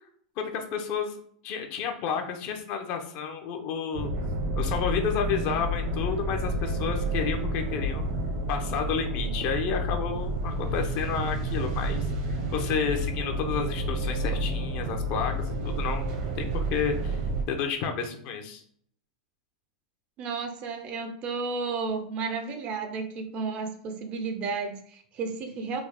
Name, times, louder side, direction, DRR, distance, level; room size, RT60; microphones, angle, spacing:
voice 1, 0.4-1.1 1.4-4.1 4.5-8.0 8.5-12.1 12.5-17.2 17.5-18.6, left 6 dB, 45° left, 4 dB, 0.7 m, -31 dB
sound 1, 3.9-17.4, right 1 dB, 55° right, 0.9 m, -30 dB
voice 2, 20.2-25.8, right 4 dB, 35° right, 7 dB, 0.6 m, -32 dB
3.5 x 2.3 x 3.5 m, 0.63 s
supercardioid pair, 135°, 4 cm